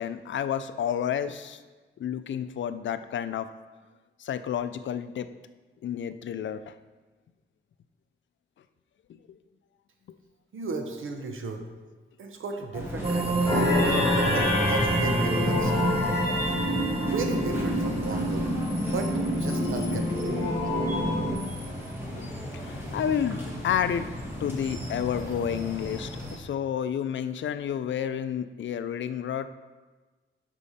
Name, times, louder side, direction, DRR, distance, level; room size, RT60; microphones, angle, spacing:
voice 1, 0.0-1.6 2.0-3.5 4.2-5.3 5.8-6.7 20.7-20.8 22.2-22.3 22.5-24.1 24.4-29.5, left 9 dB, 70° left, 11 dB, 0.4 m, -30 dB
voice 2, 10.5-11.6 12.2-16.1 17.0-18.6 18.8-20.5, right 3 dB, 85° right, 4 dB, 1.0 m, -35 dB
sound 1, 12.7-26.4, equal, 10° right, 1.4 m, -36 dB
sound 2, 13.0-20.8, right 2 dB, 30° right, 0.6 m, -31 dB
sound 3, 13.5-21.3, left 1 dB, 15° left, 1.9 m, -27 dB
8.3 x 5.5 x 4.2 m, 1.3 s
wide cardioid pair, 165°, 20 cm